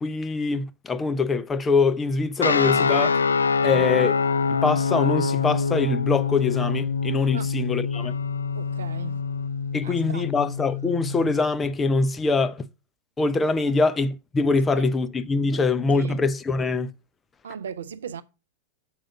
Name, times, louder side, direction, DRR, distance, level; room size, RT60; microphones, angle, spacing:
voice 1, 0.0-3.2 3.6-4.1 4.5-8.1 9.7-12.6 13.2-16.9, left 4 dB, 15° left, 0.5 m, -23 dB
sound 1, 2.4-11.4, left 5 dB, 75° left, 0.3 m, -25 dB
voice 2, 3.6-4.0 7.3-7.5 8.5-9.2 9.8-10.3 13.6-13.7 14.7-14.9 15.6-16.2 17.4-18.2, right 7 dB, 65° right, 0.6 m, -37 dB
7.4 x 5.0 x 5.3 m
figure-of-eight pair, 90°, 0 cm